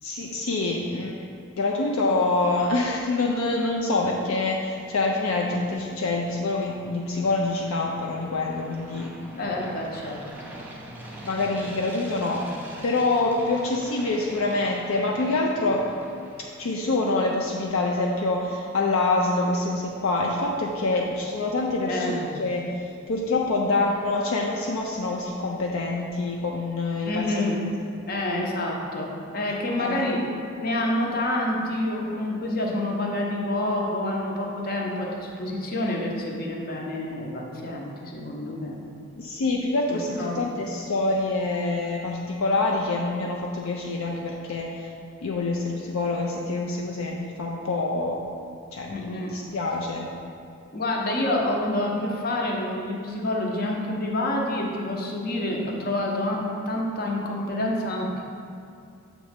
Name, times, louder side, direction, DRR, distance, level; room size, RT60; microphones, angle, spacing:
voice 1, 0.0-1.2 1.6-9.7 11.2-12.5 12.8-15.9 16.6-27.9 29.8-30.1 39.2-44.9 45.2-48.2 48.7-50.1, left 2 dB, 70° left, -1 dB, 0.4 m, -26 dB
sound 1, 4.9-17.1, right 1 dB, 10° right, 0.5 m, -44 dB
voice 2, 9.4-10.2 20.9-21.1 21.9-22.3 27.0-27.6 28.0-30.2 30.6-38.8 39.9-40.4 48.9-49.3 50.7-58.2, left 1 dB, 45° left, -1 dB, 0.8 m, -28 dB
6.9 x 3.1 x 5.0 m, 2.5 s
head